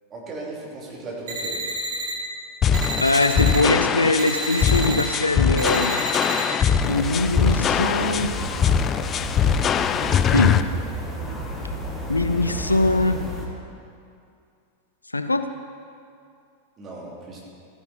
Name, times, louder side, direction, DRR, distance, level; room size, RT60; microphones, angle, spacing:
voice 1, 0.1-1.6 16.8-17.5, right 2 dB, 25° right, -4 dB, 3.1 m, -36 dB
sound 1, 1.3-2.1 2.7-3.6 4.2-5.0 5.6-6.4, right 1 dB, 55° right, 1.9 m, -29 dB
sound 2, 2.6-10.6, left 7 dB, 25° left, 0.4 m, -22 dB
voice 2, 3.0-6.0 6.8-8.4 10.3-10.7 12.1-13.3 15.1-15.5, left 2 dB, 80° left, 9 dB, 0.5 m, -22 dB
sound 3, 6.8-13.5, equal, 5° left, 1.7 m, -32 dB
14.0 x 9.5 x 4.3 m, 2.4 s
figure-of-eight pair, 90°, 0 cm